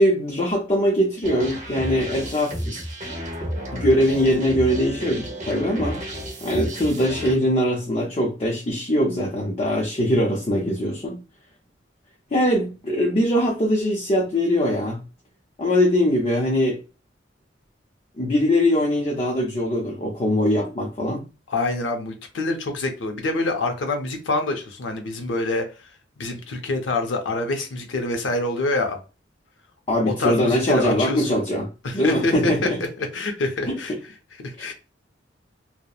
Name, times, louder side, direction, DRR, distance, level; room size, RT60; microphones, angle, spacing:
voice 1, 0.0-2.8 3.4-6.0 6.4-11.2 12.3-15.0 15.6-16.8 18.2-21.2 29.9-31.7 31.9-32.8 33.7-33.8 34.6-34.7, equal, 35° left, 0.5 m, -22 dB
sound 1, 1.2-7.4, equal, 40° right, 0.8 m, -32 dB
voice 2, 21.5-25.6 26.2-29.0 30.2-31.4 31.8-32.5 33.0-33.9 34.4-34.7, left 2 dB, 90° left, 0.6 m, -26 dB
2.8 x 2.0 x 2.3 m
head